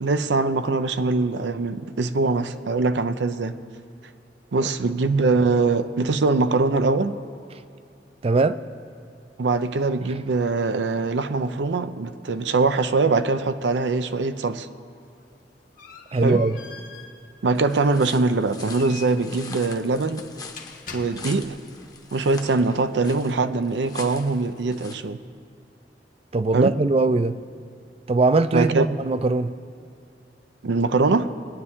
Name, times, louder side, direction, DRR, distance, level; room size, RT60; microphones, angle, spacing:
voice 1, 0.0-3.6 4.5-7.2 9.4-14.7 16.2-16.4 17.4-20.3 20.9-21.6 22.1-25.2 26.5-26.7 28.5-28.9 30.6-31.3, right 3 dB, 85° right, 0.5 m, -22 dB
voice 2, 8.2-8.6 16.1-16.6 26.3-27.4 28.1-29.5, right 3 dB, 35° right, 0.4 m, -21 dB
sound 1, 15.0-21.6, left 5 dB, 50° left, 1.3 m, -45 dB
sound 2, 17.6-24.9, left 4 dB, 20° left, 0.9 m, -42 dB
22.0 x 9.7 x 3.6 m
head